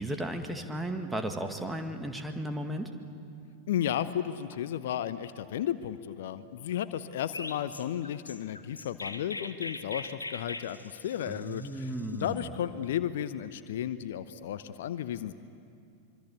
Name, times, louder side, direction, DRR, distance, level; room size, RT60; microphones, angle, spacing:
voice 1, 0.0-2.9 11.3-12.5, right 1 dB, 5° right, 5 dB, 2.0 m, -35 dB
voice 2, 3.7-15.3, left 10 dB, 55° left, 13 dB, 0.8 m, -33 dB
Chirp tweet, 7.3-12.5, left 2 dB, 80° left, 1.2 m, -41 dB
25.5 x 24.5 x 8.4 m, 2.4 s
figure-of-eight pair, 90°, 0 cm